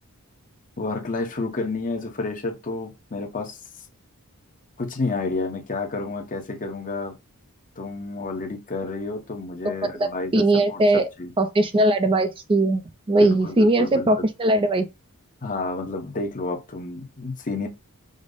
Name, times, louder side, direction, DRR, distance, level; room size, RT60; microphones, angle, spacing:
voice 1, 0.8-3.6 4.8-7.1 7.8-11.3 13.1-14.3 15.4-17.7, left 3 dB, 40° left, 0.9 m, -30 dB
voice 2, 9.6-11.1 11.4-12.8 13.1-14.9, right 2 dB, 25° right, 0.4 m, -20 dB
5.1 x 2.0 x 3.9 m
head